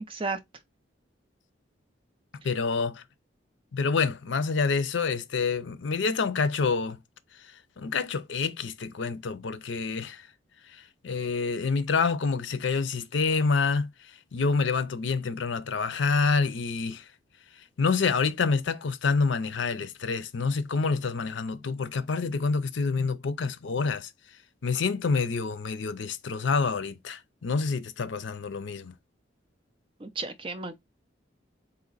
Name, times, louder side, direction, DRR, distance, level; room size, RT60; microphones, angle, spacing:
voice 1, 2.4-3.0 3.7-7.0 7.8-10.3 11.0-13.9 14.3-17.0 17.8-24.1 24.6-28.9, left 4 dB, 80° left, 0.5 m, -27 dB
voice 2, 30.0-30.8, right 3 dB, 30° right, 0.5 m, -33 dB
4.1 x 2.8 x 3.9 m
head